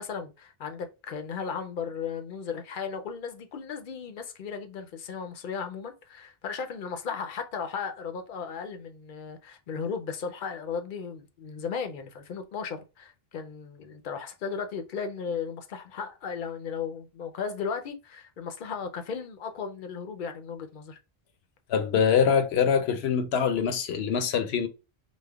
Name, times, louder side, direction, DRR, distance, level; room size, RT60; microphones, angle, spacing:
voice 1, 0.0-21.0, left 6 dB, 60° left, 0.7 m, -36 dB
voice 2, 21.7-24.7, left 7 dB, 85° left, 0.9 m, -24 dB
5.1 x 2.1 x 2.3 m
omnidirectional pair, 1.0 m